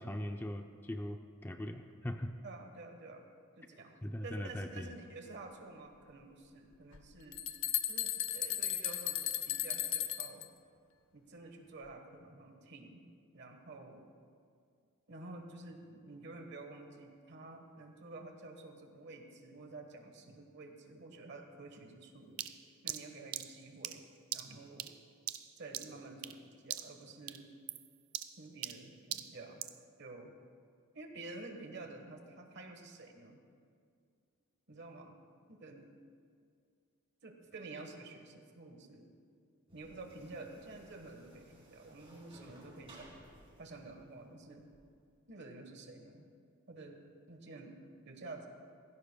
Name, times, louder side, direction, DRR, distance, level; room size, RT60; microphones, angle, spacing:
voice 1, 0.0-2.3 4.0-4.9, left 1 dB, 10° left, 5 dB, 0.4 m, -40 dB
voice 2, 2.4-3.2 3.6-3.9 4.2-7.4 7.9-10.5 11.1-13.0 13.3-14.1 15.1-22.4 22.8-24.0 24.3-24.9 25.6-27.5 28.4-29.7 30.0-30.3 30.9-33.4 34.7-35.2 35.5-35.9 37.2-39.1 39.7-43.1 43.6-44.7 45.3-46.3 46.7-47.0 47.3-47.8 48.0-48.5, right 2 dB, 50° right, 4 dB, 1.2 m, -50 dB
sound 1, 6.9-7.0 7.3-10.5, left 11 dB, 65° left, 0.6 m, -35 dB
sound 2, 22.4-26.4 26.7-27.0 27.3-29.8, right 12 dB, 75° right, 0.5 m, -42 dB
sound 3, 39.7-44.8, right 1 dB, 25° right, 2.8 m, -59 dB
17.5 x 15.5 x 2.2 m, 2.2 s
head